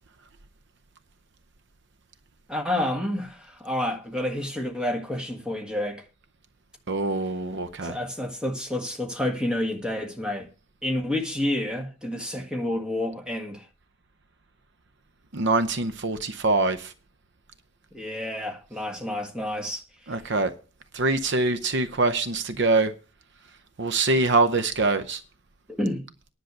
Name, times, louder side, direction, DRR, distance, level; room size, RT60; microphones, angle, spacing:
voice 1, 2.5-6.0 7.8-10.5 10.8-13.6 17.9-19.8 25.8-26.0, left 1 dB, 5° right, 1.5 m, -29 dB
voice 2, 6.9-8.0 15.3-16.9 20.1-20.5 20.9-22.9 23.8-25.2, right 3 dB, 55° right, 0.7 m, -24 dB
10.5 x 6.4 x 8.0 m
head